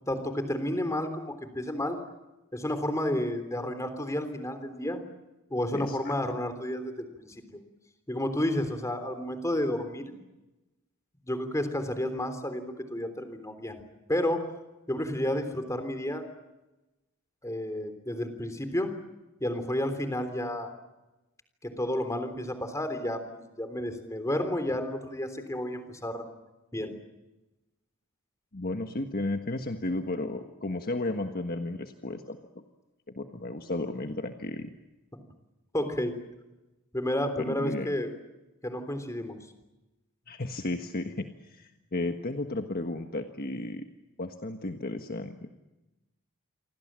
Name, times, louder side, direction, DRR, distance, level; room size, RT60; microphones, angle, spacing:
voice 1, 0.1-2.0 2.5-5.0 5.5-7.6 8.1-10.1 11.3-13.8 14.1-14.4 14.9-16.3 17.4-18.9 19.4-20.7 21.6-26.3 26.7-26.9 33.3-33.5 35.7-36.1 36.9-38.1 38.6-39.4, left 1 dB, 15° left, 8 dB, 3.5 m, -31 dB
voice 2, 28.5-32.6 33.1-34.7 37.5-37.9 40.3-43.9 44.2-45.5, left 2 dB, 45° left, 5 dB, 1.5 m, -34 dB
29.0 x 24.5 x 7.6 m, 1.0 s
head